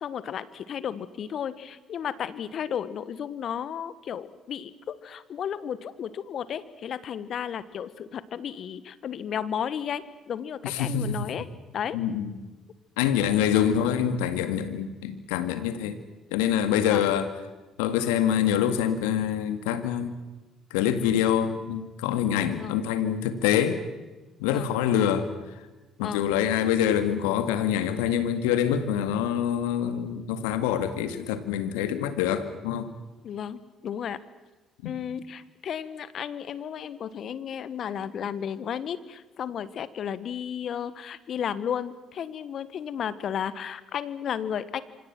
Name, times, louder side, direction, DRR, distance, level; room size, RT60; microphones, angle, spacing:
voice 1, 0.0-11.5 11.7-12.0 16.8-17.1 22.5-22.8 24.4-24.7 26.0-26.3 33.2-34.2 34.8-44.8, left 8 dB, 55° left, 16 dB, 1.4 m, -33 dB
voice 2, 10.6-11.3 11.9-12.4 13.0-16.0 16.3-17.3 17.8-20.2 20.7-23.8 24.4-25.3 26.0-32.9 34.8-34.9, left 9 dB, 80° left, 10 dB, 1.9 m, -25 dB
27.0 x 25.5 x 6.1 m, 1.2 s
hypercardioid pair, 50°, 0 cm